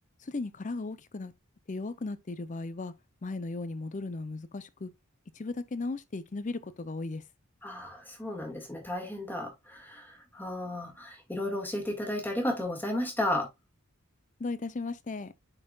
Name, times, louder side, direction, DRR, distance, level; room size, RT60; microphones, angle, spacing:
voice 1, 0.2-1.3 1.7-2.9 3.2-4.9 5.3-7.2 14.4-15.3, left 3 dB, 35° left, 0.6 m, -36 dB
voice 2, 7.6-13.5, left 1 dB, 10° left, 1.8 m, -33 dB
9.7 x 4.4 x 2.3 m
head